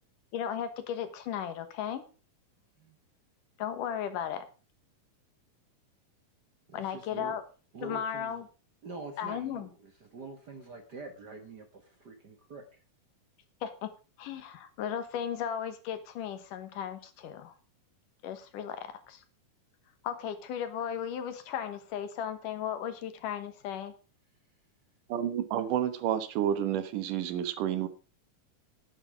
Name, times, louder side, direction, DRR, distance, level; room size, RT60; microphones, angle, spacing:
voice 1, 0.3-2.0 3.6-4.4 6.7-7.4 7.8-8.4 9.2-9.7 13.6-13.9 14.2-17.5 18.2-19.2 20.0-23.9, left 9 dB, 80° left, 10 dB, 2.8 m, -35 dB
voice 2, 6.7-7.4 7.7-8.4 8.8-12.8, right 3 dB, 45° right, 5 dB, 1.4 m, -45 dB
voice 3, 25.1-27.9, right 10 dB, 80° right, 12 dB, 2.7 m, -30 dB
11.0 x 10.5 x 5.0 m, 0.34 s
omnidirectional pair, 3.8 m